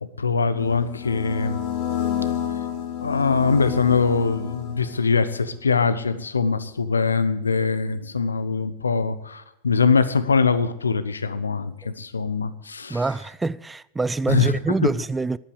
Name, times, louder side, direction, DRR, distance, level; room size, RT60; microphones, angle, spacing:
voice 1, 0.2-1.6 3.0-13.0 14.3-14.9, left 5 dB, 75° left, 0.9 m, -22 dB
sound 1, 0.5-5.2, left 9 dB, 50° left, 2.5 m, -29 dB
voice 2, 12.9-15.4, right 3 dB, 10° right, 0.4 m, -25 dB
13.5 x 11.5 x 4.8 m
figure-of-eight pair, 90°, 0 cm